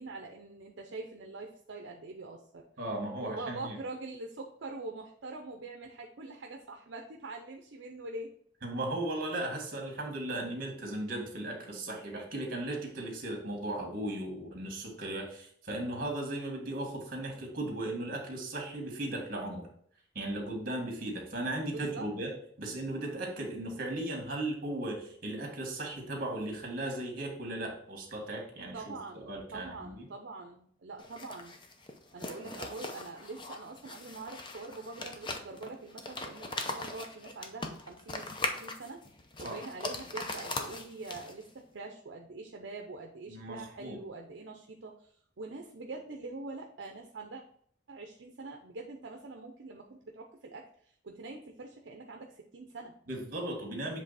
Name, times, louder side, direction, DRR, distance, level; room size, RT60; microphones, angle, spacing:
voice 1, 0.0-2.7 3.2-8.3 21.6-22.0 28.7-31.5 32.1-38.3 38.6-39.0 39.4-47.4 47.9-52.9, right 3 dB, 70° right, 2 dB, 0.6 m, -44 dB
voice 2, 2.8-3.8 8.6-19.7 20.1-22.3 22.6-30.1 32.4-32.5 39.4-39.6 43.3-44.0 53.1-54.0, right 1 dB, 50° right, 1 dB, 1.9 m, -37 dB
sound 1, 31.0-41.5, left 2 dB, 25° left, 0.6 m, -40 dB
7.4 x 3.3 x 4.1 m, 0.62 s
head